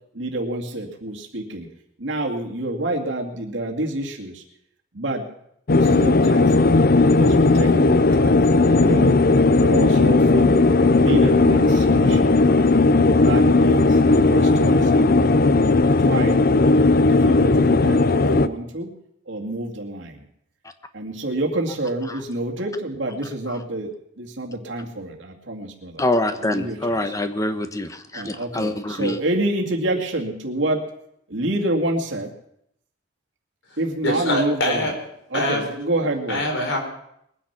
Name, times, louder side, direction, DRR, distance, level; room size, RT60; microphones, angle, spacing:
voice 1, 0.1-1.7 2.0-4.4 4.9-5.2 5.7-6.8 7.2-9.2 9.6-10.6 10.9-12.4 13.2-16.5 17.0-18.9 19.3-20.3 20.9-23.9 24.2-26.0 26.4-26.8 28.1-30.8 31.3-32.3 33.8-34.9 35.3-36.4, right 1 dB, 80° right, 0 dB, 2.2 m, -28 dB
sound 1, 5.7-18.5, left 3 dB, 55° left, 0.6 m, -16 dB
voice 2, 26.0-29.2, left 1 dB, 20° left, 8 dB, 1.2 m, -25 dB
voice 3, 34.0-34.9 35.3-35.6 36.3-36.8, left 1 dB, 75° left, 2 dB, 4.6 m, -23 dB
21.0 x 10.0 x 5.9 m, 0.74 s
head